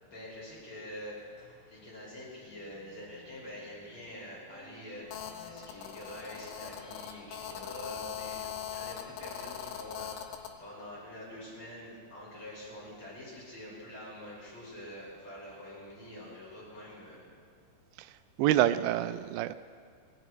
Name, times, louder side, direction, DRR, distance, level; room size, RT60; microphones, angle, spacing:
voice 1, 0.0-1.2 1.7-5.1 5.4-17.3, left 1 dB, 25° left, -6 dB, 5.8 m, -46 dB
sound 1, 1.2-9.2, left 1 dB, 55° left, 5.9 m, -58 dB
Telephone, 5.1-10.5, left 9 dB, 70° left, 2.3 m, -41 dB
voice 2, 18.0-19.5, right 13 dB, 85° right, 12 dB, 2.8 m, -28 dB
21.0 x 18.0 x 3.1 m, 2.1 s
omnidirectional pair, 5.2 m